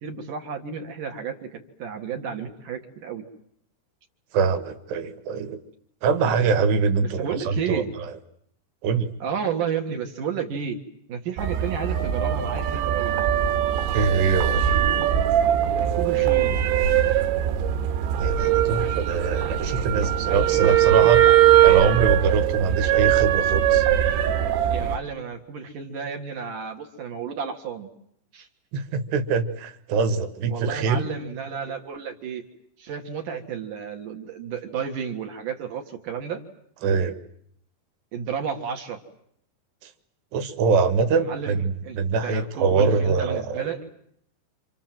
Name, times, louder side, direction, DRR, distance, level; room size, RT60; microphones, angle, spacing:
voice 1, 0.0-3.2 7.0-7.9 9.2-10.8 11.1-13.1 15.8-16.6 20.2-21.2 24.7-27.9 28.3-28.5 30.5-32.4 32.8-36.4 38.1-39.0 41.1-41.6 41.8-43.9, right 7 dB, 55° right, 4 dB, 2.9 m, -32 dB
voice 2, 4.3-5.6 6.0-7.8 8.8-9.1 13.9-14.6 18.2-21.2 21.6-23.9 28.7-31.1 36.8-37.2 39.8-39.9 40.3-43.6, right 5 dB, 70° right, 11 dB, 3.5 m, -23 dB
sound 1, 11.4-25.0, right 11 dB, 90° right, 3.7 m, -21 dB
28.0 x 26.5 x 7.6 m, 0.70 s
omnidirectional pair, 5.1 m